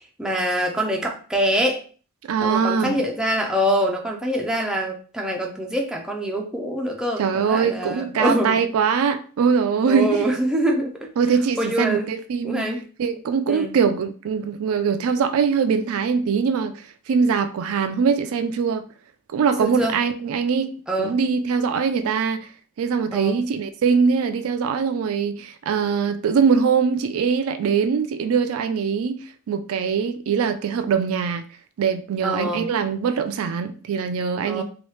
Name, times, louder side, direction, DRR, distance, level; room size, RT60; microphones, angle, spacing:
voice 1, 0.2-1.8 2.4-8.6 9.9-11.1 11.6-12.1 12.4-12.8 13.5-13.8 19.6-20.0 20.9-21.2 23.1-23.3 32.2-32.7 34.5-34.6, right 1 dB, 5° right, 0.4 m, -24 dB
voice 2, 2.2-3.0 7.2-10.3 11.2-12.7 13.0-16.7 17.1-18.9 19.3-20.7 21.0-22.5 22.8-29.2 29.5-31.4 31.8-34.6, right 6 dB, 75° right, 0.3 m, -22 dB
3.0 x 2.3 x 3.1 m
head